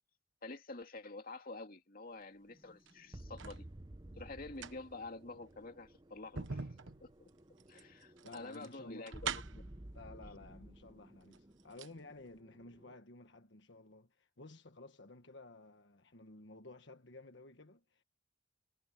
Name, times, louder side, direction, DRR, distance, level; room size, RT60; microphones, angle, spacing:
voice 1, 0.4-3.6 4.2-6.7 7.0-7.3 7.7-9.6, left 3 dB, 50° left, 2.5 m, -48 dB
sound 1, 2.5-13.0, right 1 dB, 20° right, 0.9 m, -55 dB
sound 2, 2.7-3.6 4.4-9.8 10.7-10.8 11.2-12.0 12.3-12.4, right 5 dB, 75° right, 1.2 m, -45 dB
voice 2, 8.2-9.1 9.9-18.0, left 2 dB, 65° left, 1.5 m, -54 dB
head